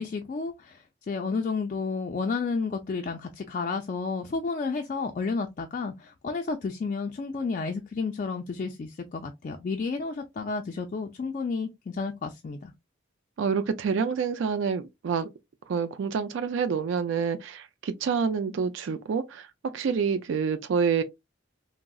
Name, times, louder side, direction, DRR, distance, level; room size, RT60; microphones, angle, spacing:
voice 1, 0.0-12.7, left 4 dB, 40° left, 0.3 m, -31 dB
voice 2, 13.4-15.3 15.7-19.5 19.7-21.0, right 6 dB, 70° right, 0.3 m, -27 dB
3.6 x 2.0 x 2.2 m
head